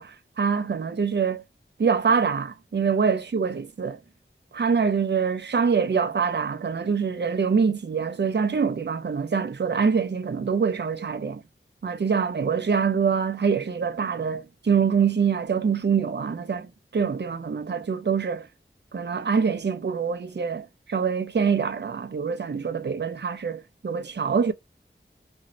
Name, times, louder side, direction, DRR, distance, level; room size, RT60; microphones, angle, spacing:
voice 1, 0.0-1.4 1.8-4.0 4.5-11.4 11.8-16.7 16.9-18.5 18.9-24.5, right 6 dB, 55° right, 0.5 m, -25 dB
3.0 x 2.7 x 2.5 m
wide cardioid pair, 45°, 21 cm